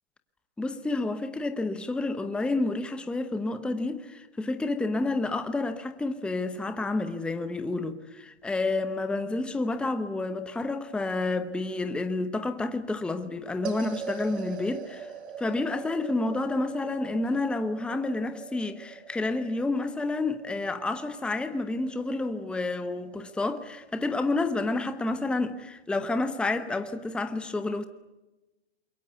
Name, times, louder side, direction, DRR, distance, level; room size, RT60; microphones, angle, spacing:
voice 1, 0.6-15.1 15.4-27.8, left 2 dB, 5° left, 0.9 m, -29 dB
sound 1, 13.6-24.1, right 6 dB, 75° right, 3.1 m, -42 dB
27.0 x 22.5 x 8.2 m
hypercardioid pair, 145°, 34 cm